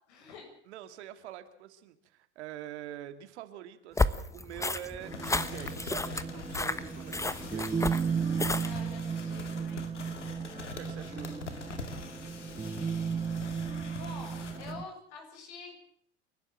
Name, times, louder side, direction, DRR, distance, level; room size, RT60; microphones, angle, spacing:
voice 1, 0.1-0.5 8.6-9.9 13.0-13.1 14.0-15.8, left 4 dB, 70° left, 4 dB, 7.1 m, -47 dB
voice 2, 0.7-7.8 10.7-11.3, right 11 dB, 70° right, 10 dB, 2.2 m, -45 dB
sound 1, 4.0-8.9, left 2 dB, 10° left, 1.1 m, -32 dB
sound 2, 5.0-14.7, left 5 dB, 90° left, 2.3 m, -44 dB
sound 3, 5.0-14.8, right 6 dB, 15° right, 1.2 m, -35 dB
29.0 x 12.0 x 7.5 m, 0.63 s
hypercardioid pair, 80°, 35 cm